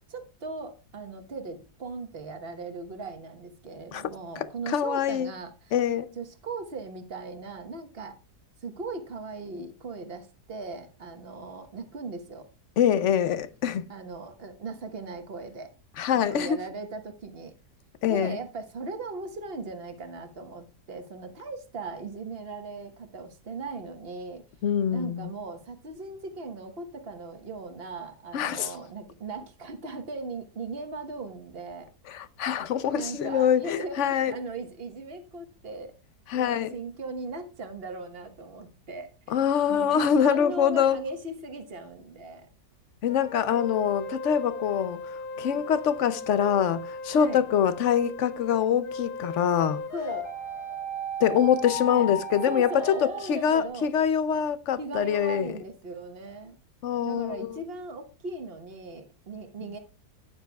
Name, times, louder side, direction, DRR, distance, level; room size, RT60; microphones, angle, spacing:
voice 1, 0.1-5.7 6.1-8.2 8.6-12.5 13.9-15.7 16.1-17.5 18.0-24.4 24.9-31.9 32.9-35.9 36.3-39.4 39.7-42.5 45.5-45.6 47.1-47.4 49.9-50.3 51.8-52.1 52.5-53.9 54.8-56.6 57.1-59.8, right 3 dB, 40° right, 1.3 m, -38 dB
voice 2, 4.7-5.3 5.7-6.1 12.8-13.9 16.0-16.6 18.0-18.4 24.6-25.3 28.3-28.7 32.1-34.3 36.3-36.7 39.3-41.0 43.0-45.0 45.4-49.8 51.2-55.5 56.8-57.6, left 8 dB, 60° left, 0.8 m, -24 dB
sound 1, 43.1-53.7, left 1 dB, 35° left, 1.6 m, -36 dB
12.0 x 9.5 x 2.3 m
omnidirectional pair, 1.7 m